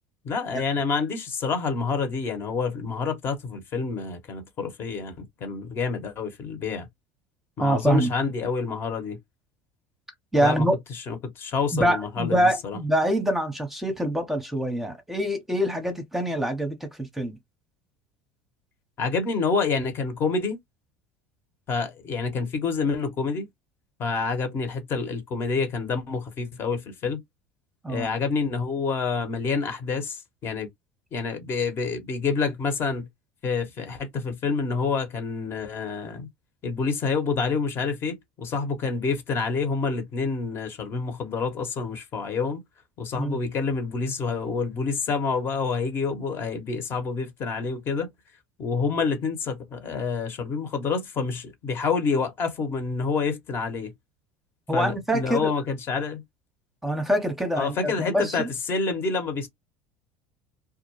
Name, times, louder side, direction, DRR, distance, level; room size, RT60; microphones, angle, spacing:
voice 1, 0.2-6.9 7.6-9.2 10.4-10.7 11.1-12.8 19.0-20.6 21.7-23.5 24.0-27.2 27.9-30.7 31.1-33.1 33.4-36.3 36.6-42.6 43.0-48.1 48.6-53.9 54.7-56.2 57.6-59.5, left 4 dB, 45° left, 1.0 m, -28 dB
voice 2, 7.6-8.1 10.3-10.7 11.7-17.4 27.8-28.1 43.1-43.4 54.7-55.5 56.8-58.5, right 1 dB, 5° right, 0.8 m, -25 dB
2.3 x 2.1 x 3.0 m
hypercardioid pair, 85°, 6 cm